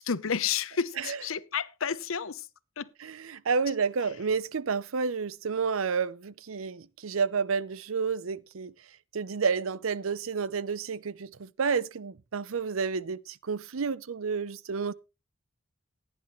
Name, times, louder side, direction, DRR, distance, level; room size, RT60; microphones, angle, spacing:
voice 1, 0.0-2.4 2.8-2.9, left 7 dB, 85° left, 0.8 m, -31 dB
voice 2, 3.0-8.7 9.1-14.9, right 5 dB, 90° right, 0.6 m, -30 dB
16.5 x 9.9 x 3.1 m
head